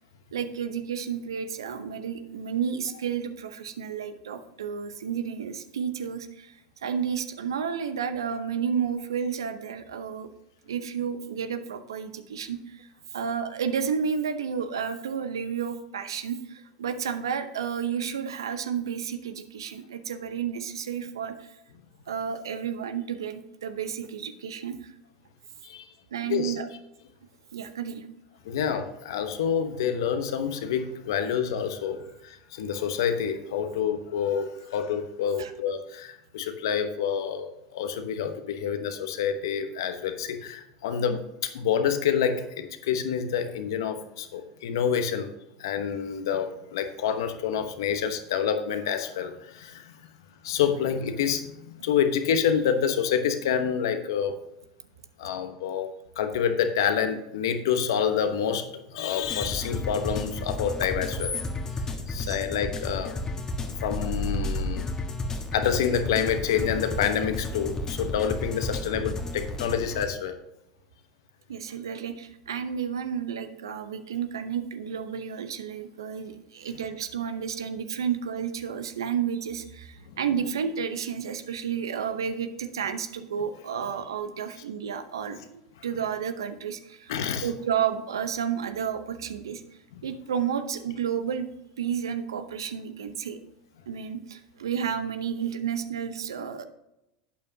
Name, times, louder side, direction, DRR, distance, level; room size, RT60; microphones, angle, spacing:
voice 1, 0.3-10.3 10.7-21.6 22.1-24.9 26.1-26.7 27.5-28.1 35.4-35.5 62.3-62.4 71.5-87.1 87.4-89.6 90.0-91.5 91.8-93.4 93.9-96.6, right 7 dB, 80° right, 10 dB, 0.8 m, -31 dB
voice 2, 26.3-26.6 28.4-45.3 45.6-50.0 50.4-54.3 55.2-61.3 62.1-63.2 63.8-64.9 65.5-70.4 80.1-80.2 87.1-87.5 89.9-90.0, left 8 dB, 70° left, 8 dB, 1.1 m, -28 dB
sound 1, 59.2-70.1, left 2 dB, 25° left, 1.4 m, -32 dB
11.5 x 8.6 x 2.8 m, 0.89 s
hypercardioid pair, 85°, 2 cm